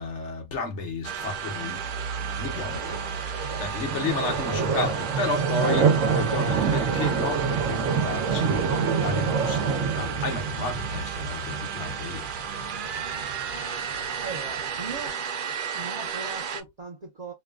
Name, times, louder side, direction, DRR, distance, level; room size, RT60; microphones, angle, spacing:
voice 1, 0.0-1.9 2.4-12.3, left 3 dB, 70° left, 1.3 m, -32 dB
sound 1, 1.0-16.6, right 7 dB, 60° right, 0.6 m, -34 dB
sound 2, 1.2-15.1, right 6 dB, 75° right, 1.1 m, -28 dB
sound 3, 1.7-11.3, right 4 dB, 50° left, 1.1 m, -40 dB
voice 2, 14.2-15.2 15.7-17.3, right 4 dB, 35° right, 1.0 m, -38 dB
3.0 x 2.4 x 2.3 m
omnidirectional pair, 1.3 m